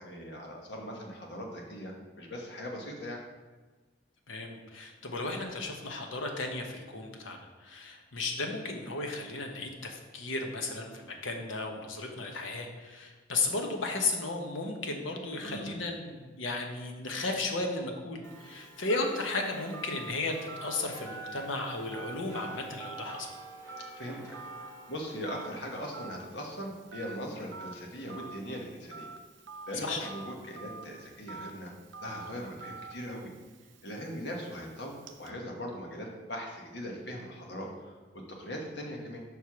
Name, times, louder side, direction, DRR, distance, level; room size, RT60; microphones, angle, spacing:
voice 1, 0.0-3.2 15.4-15.7 23.8-29.1 29.7-31.7 32.0-33.3 33.8-39.2, equal, 55° left, 0 dB, 1.3 m, -40 dB
voice 2, 4.3-20.3 20.6-23.3 29.7-30.1, left 3 dB, 80° left, 3 dB, 1.0 m, -34 dB
sound 1, 18.2-29.0 29.4-29.5, right 3 dB, 15° left, 0.7 m, -50 dB
Telephone, 18.2-35.3, right 3 dB, 70° right, 0.6 m, -48 dB
5.6 x 4.7 x 5.7 m, 1.3 s
head